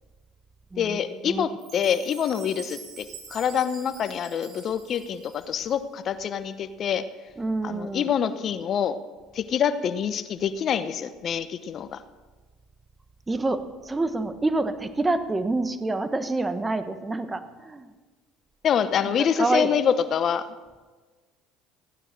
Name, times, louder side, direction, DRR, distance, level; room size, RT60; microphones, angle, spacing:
voice 1, 0.8-7.0 7.6-9.0 9.3-12.0 18.6-20.4, left 8 dB, 50° left, 12 dB, 1.0 m, -26 dB
Chime, 1.6-5.8, right 5 dB, 55° right, 4.4 m, -45 dB
voice 2, 7.4-8.1 13.3-17.9 19.2-19.7, right 2 dB, 20° right, 10 dB, 1.3 m, -27 dB
15.0 x 9.8 x 6.6 m, 1.3 s
hypercardioid pair, 75°, 0 cm